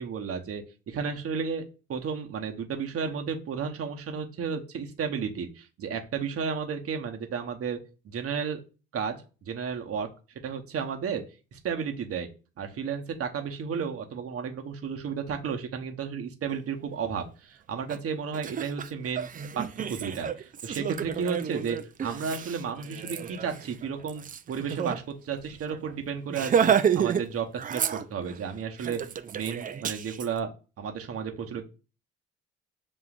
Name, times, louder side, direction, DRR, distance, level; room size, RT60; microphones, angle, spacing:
voice 1, 0.0-7.8 8.0-8.6 8.9-9.2 9.5-10.1 10.4-11.2 11.5-12.3 12.6-19.3 19.5-29.0 29.3-30.5 30.8-31.7, right 6 dB, 50° right, 5 dB, 0.9 m, -33 dB
Laughter, 17.9-18.0 18.3-25.0 25.3-25.4 25.7-25.9 26.3-27.3 27.5-28.4 28.8-30.3, right 8 dB, 30° right, 0.4 m, -30 dB
7.0 x 2.4 x 2.4 m, 0.34 s
hypercardioid pair, 60°, 30 cm